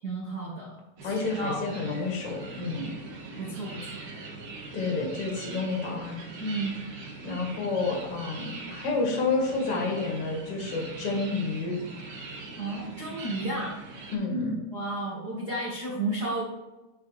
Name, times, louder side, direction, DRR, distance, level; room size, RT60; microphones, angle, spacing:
voice 1, 0.0-1.7 3.4-4.0 6.4-6.8 12.6-13.8 14.7-16.4, right 2 dB, 85° right, -5 dB, 0.8 m, -33 dB
voice 2, 1.0-2.9 4.7-6.2 7.2-11.8 14.1-14.6, left 3 dB, 50° left, 0 dB, 1.9 m, -29 dB
sound 1, 1.0-14.2, right 3 dB, 55° right, 2.8 m, -41 dB
10.5 x 4.6 x 3.3 m, 1.1 s
omnidirectional pair, 4.7 m